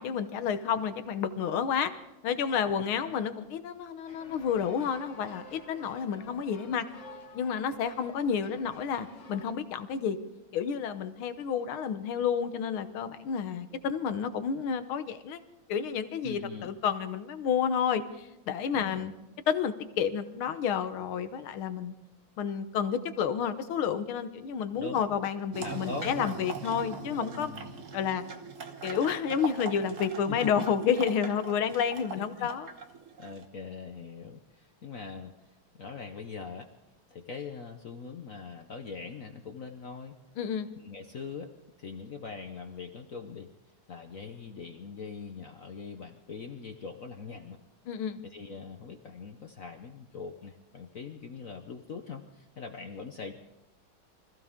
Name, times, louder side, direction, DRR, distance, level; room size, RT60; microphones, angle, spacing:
voice 1, 0.0-1.9 2.2-6.9 7.3-10.2 10.5-15.4 15.7-19.1 19.5-21.9 22.4-27.5 27.9-28.2 28.8-32.7 40.4-40.7 47.9-48.2, left 7 dB, 80° left, 10 dB, 1.8 m, -30 dB
sound 1, 4.1-9.5, left 1 dB, 40° left, 1.4 m, -49 dB
voice 2, 16.2-16.7 18.7-19.1 24.8-25.2 25.6-26.4 26.7-26.8 27.4-27.8 30.3-30.4 32.1-32.5 33.2-35.3 35.8-36.7 37.1-40.2 40.7-41.5 41.8-43.5 43.9-47.6 48.2-53.3, left 5 dB, 55° left, 5 dB, 1.0 m, -42 dB
sound 2, 25.5-33.4, right 5 dB, 45° right, 1.4 m, -41 dB
25.0 x 15.0 x 3.7 m, 0.96 s
omnidirectional pair, 2.3 m